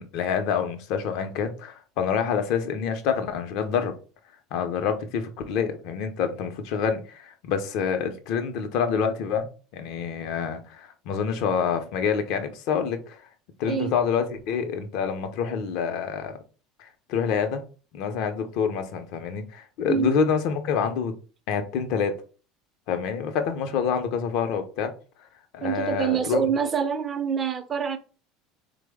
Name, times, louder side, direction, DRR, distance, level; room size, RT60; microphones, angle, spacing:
voice 1, 0.0-3.9 4.5-9.5 9.7-13.2 13.6-16.4 16.8-17.6 17.9-21.1 21.5-22.1 22.9-24.9 25.5-26.4, left 6 dB, 65° left, 0.5 m, -27 dB
voice 2, 25.6-28.0, right 7 dB, 35° right, 0.5 m, -26 dB
3.0 x 2.0 x 3.4 m
hypercardioid pair, 80°, 0 cm